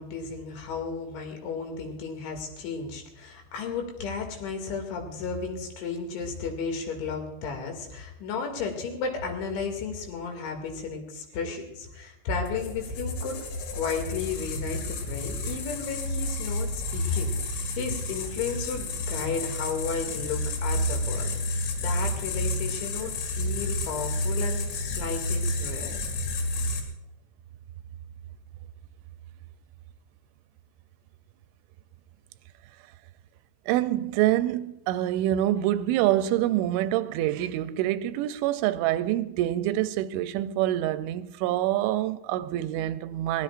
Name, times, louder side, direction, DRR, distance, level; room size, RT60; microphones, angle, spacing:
voice 1, 0.0-13.4 13.7-26.0, left 5 dB, 75° left, 4.7 m, -33 dB
sound 1, 12.5-26.8, left 1 dB, 90° left, 4.8 m, -30 dB
voice 2, 33.7-43.4, right 13 dB, 85° right, 2.9 m, -26 dB
22.5 x 17.5 x 2.5 m
omnidirectional pair, 5.5 m